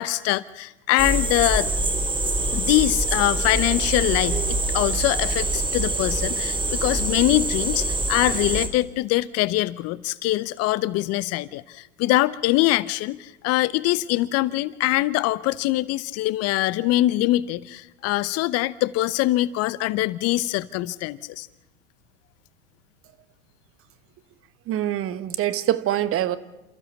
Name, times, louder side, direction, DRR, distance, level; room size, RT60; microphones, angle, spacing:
voice 1, 0.0-1.7 2.5-21.5, left 17 dB, 40° left, 0.7 m, -23 dB
sound 1, 1.0-8.7, right 2 dB, 10° right, 2.7 m, -25 dB
voice 2, 24.7-26.4, right 12 dB, 35° right, 1.3 m, -24 dB
28.5 x 15.0 x 7.1 m
hypercardioid pair, 100°, 39 cm